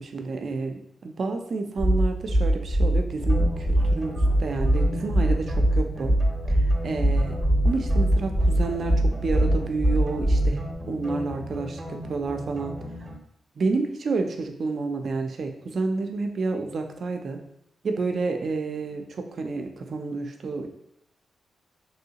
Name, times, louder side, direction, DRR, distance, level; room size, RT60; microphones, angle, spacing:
voice 1, 0.0-6.1 6.5-7.4 7.6-12.8 13.6-17.4 17.8-20.7, right 3 dB, 60° right, 5 dB, 0.4 m, -30 dB
sound 1, 1.8-10.7, right 1 dB, 35° left, 0.9 m, -21 dB
sound 2, 3.2-13.1, left 1 dB, 25° right, 0.7 m, -36 dB
3.0 x 2.7 x 2.8 m, 0.74 s
cardioid pair, 70°, 0 cm